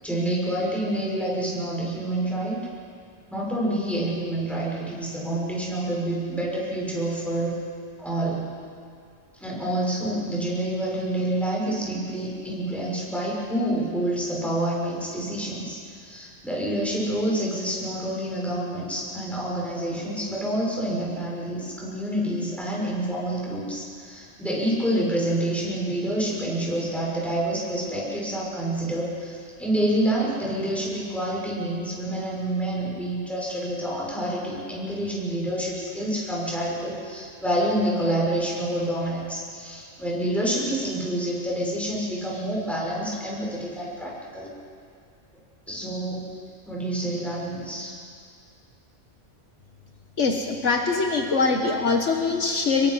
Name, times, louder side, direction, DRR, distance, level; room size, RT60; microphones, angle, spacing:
voice 1, 0.0-2.6 3.3-7.6 8.0-8.4 9.4-44.5 45.7-46.3 46.7-47.9, right 1 dB, ahead, -5 dB, 6.4 m, -28 dB
voice 2, 50.2-52.9, left 4 dB, 65° left, 3 dB, 1.6 m, -23 dB
26.5 x 22.5 x 5.8 m, 2.3 s
omnidirectional pair, 1.3 m